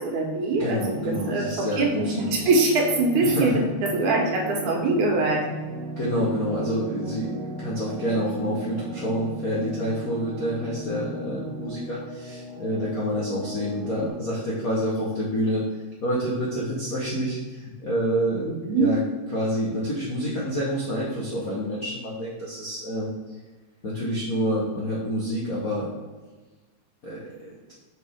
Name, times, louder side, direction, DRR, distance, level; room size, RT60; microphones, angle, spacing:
voice 1, 0.0-3.6 3.9-5.5 18.4-18.9, right 2 dB, 85° right, 0 dB, 2.8 m, -23 dB
voice 2, 0.6-2.5 3.2-3.6 6.0-7.3 7.6-15.6 16.0-18.5 18.7-19.0 19.3-23.1 23.8-25.9 27.0-27.2, equal, 65° left, -5 dB, 0.8 m, -28 dB
sound 1, 0.9-14.1, right 2 dB, 60° right, 1.4 m, -37 dB
6.3 x 5.7 x 3.6 m, 1.2 s
omnidirectional pair, 3.4 m